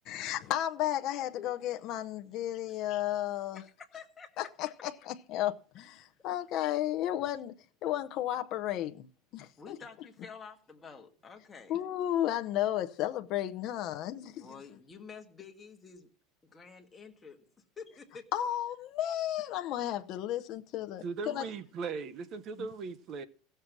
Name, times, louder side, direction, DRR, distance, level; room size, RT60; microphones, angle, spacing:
voice 1, 0.1-3.6 4.4-7.5 7.8-9.1 9.3-9.8 11.7-14.5 18.3-21.5, left 12 dB, 40° left, 0.7 m, -33 dB
voice 2, 3.5-4.3 9.6-11.8 14.4-16.1 16.4-17.4 17.8-18.2, left 5 dB, 15° left, 1.7 m, -49 dB
voice 3, 21.0-23.2, right 5 dB, 30° right, 0.8 m, -38 dB
16.0 x 6.7 x 6.0 m
supercardioid pair, 170°, 0 cm